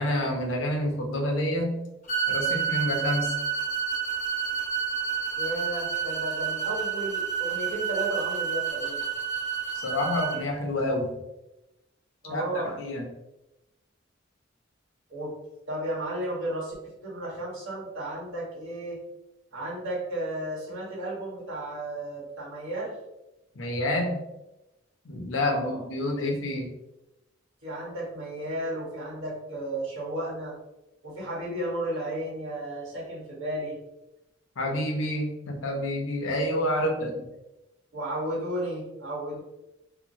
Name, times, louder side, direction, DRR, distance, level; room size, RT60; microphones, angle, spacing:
voice 1, 0.0-1.8 2.3-3.3 9.7-11.1 12.2-13.1 23.5-24.2 25.0-26.7 34.6-37.2, left 1 dB, 80° left, 1 dB, 0.6 m, -28 dB
sound 1, 2.1-10.4, right 7 dB, 40° left, 0.6 m, -29 dB
voice 2, 5.4-9.0 12.2-12.7 15.1-15.3 15.7-19.0 19.5-22.9 25.4-25.8 27.6-30.5 31.0-33.8 36.7-37.1 37.9-39.4, right 1 dB, 90° right, -5 dB, 1.2 m, -33 dB
2.9 x 2.1 x 2.6 m, 0.93 s
head